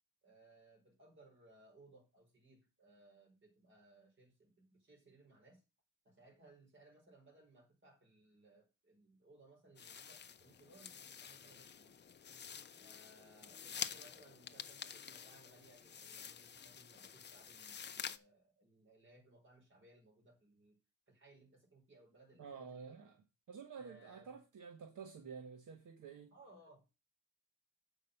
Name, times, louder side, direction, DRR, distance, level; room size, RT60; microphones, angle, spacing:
voice 1, 0.2-5.6 6.0-12.0 12.7-20.8 21.1-23.1 23.8-24.4 26.3-26.8, right 2 dB, 35° right, 4.6 m, -64 dB
sound 1, 9.8-18.2, left 7 dB, 30° left, 0.6 m, -49 dB
voice 2, 22.4-26.3, right 6 dB, 65° right, 1.3 m, -51 dB
8.5 x 5.3 x 6.5 m
wide cardioid pair, 140°, 34 cm